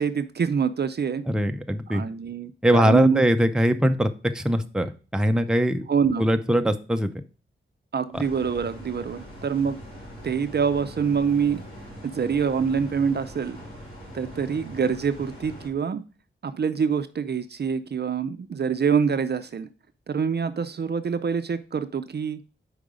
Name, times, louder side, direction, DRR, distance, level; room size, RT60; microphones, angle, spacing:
voice 1, 0.0-1.2 1.9-3.2 5.9-6.3 7.9-9.8 10.2-11.6 12.0-13.6 14.1-16.0 16.4-19.7 20.1-22.4, right 6 dB, 50° right, 11 dB, 0.5 m, -25 dB
voice 2, 1.3-2.0 2.6-5.8 6.2-7.1 8.1-8.2, equal, 5° right, 7 dB, 0.6 m, -22 dB
sound 1, 8.1-15.7, equal, 25° left, 3.4 m, -42 dB
5.2 x 4.7 x 4.9 m, 0.35 s
wide cardioid pair, 95°, 21 cm